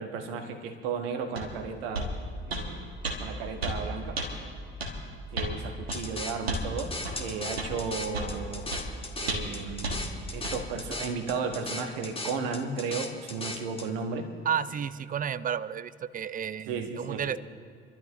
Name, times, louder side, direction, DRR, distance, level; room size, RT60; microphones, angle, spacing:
voice 1, 0.0-2.1 2.5-2.9 3.2-4.2 5.3-6.9 7.2-8.6 9.2-14.3 16.7-17.2, right 5 dB, 70° right, 6 dB, 1.4 m, -34 dB
sound 1, 1.4-1.5 1.9-2.1 2.5-2.7 3.0-3.2 3.6-3.8 4.2-4.3 4.8-4.9 5.4-5.5 5.9-6.0 6.5-6.7 7.0-7.2 7.6-7.7 8.1-8.3 8.7-8.8 9.3-9.5 9.8-10.0 10.4-10.6, right 1 dB, 85° right, 1.5 m, -32 dB
sound 2, 5.9-13.9, left 2 dB, 20° left, 1.5 m, -38 dB
voice 2, 14.5-17.4, right 8 dB, 30° right, 17 dB, 0.5 m, -32 dB
27.5 x 12.5 x 3.0 m, 2.4 s
figure-of-eight pair, 45°, 30 cm